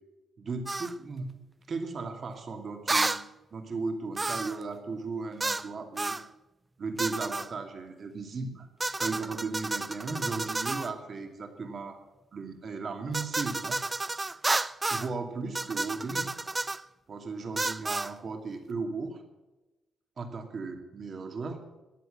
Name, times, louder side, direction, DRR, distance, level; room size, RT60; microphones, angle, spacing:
voice 1, 0.4-1.3 1.7-3.1 3.5-6.2 6.8-8.7 9.0-12.0 12.3-13.8 14.9-16.3 17.1-19.2 20.2-21.6, right 4 dB, 40° right, 5 dB, 2.4 m, -36 dB
sound 1, 0.7-0.9 2.9-3.2 4.2-4.6 5.4-5.7 6.0-6.2 7.0-7.5 8.8-10.9 13.1-15.1 15.5-16.8 17.6-18.1, right 2 dB, 15° right, 0.4 m, -31 dB
14.0 x 11.0 x 7.8 m, 1.1 s
cardioid pair, 145°, 0 cm